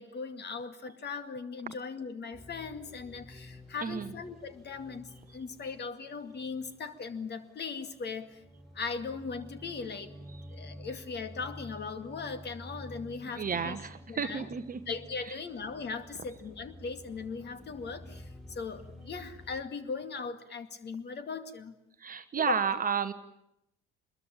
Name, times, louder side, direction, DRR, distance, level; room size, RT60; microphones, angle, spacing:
voice 1, 0.0-8.4 8.7-10.1 10.5-13.8 14.1-14.5 14.9-21.8 22.4-22.6, left 5 dB, 35° left, 10 dB, 2.3 m, -39 dB
sound 1, 2.3-19.6, equal, ahead, 5.1 m, -50 dB
voice 2, 3.8-4.1 13.3-14.8 22.0-23.1, right 7 dB, 25° right, 10 dB, 1.2 m, -31 dB
25.5 x 21.5 x 8.8 m, 0.80 s
figure-of-eight pair, 65°, 32 cm